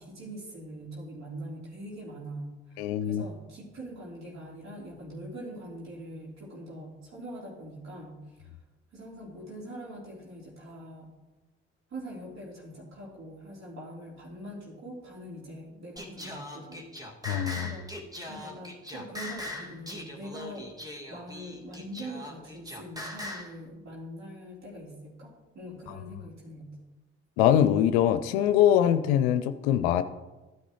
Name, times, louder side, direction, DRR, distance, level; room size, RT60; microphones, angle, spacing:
voice 1, 0.0-8.5 8.9-11.1 11.9-16.9 17.5-17.9 18.3-20.7 21.1-26.8, right 1 dB, 60° right, -5 dB, 3.8 m, -43 dB
voice 2, 2.8-3.2 17.3-17.7 27.4-30.0, left 10 dB, 85° left, 10 dB, 0.5 m, -23 dB
Singing, 16.0-23.5, left 1 dB, 10° right, 2.3 m, -40 dB
14.5 x 9.9 x 3.2 m, 1.1 s
hypercardioid pair, 45°, 31 cm